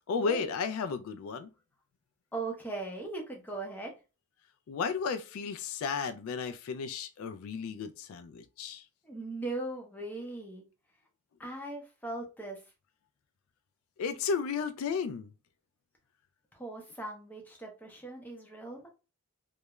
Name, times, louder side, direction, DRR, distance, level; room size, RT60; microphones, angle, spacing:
voice 1, 0.1-1.5 4.7-8.8 14.0-15.3, left 5 dB, 75° left, 0.3 m, -33 dB
voice 2, 2.3-3.9 9.0-10.6 11.4-12.6 16.5-18.9, right 2 dB, 10° left, 0.5 m, -39 dB
2.3 x 2.0 x 2.9 m
head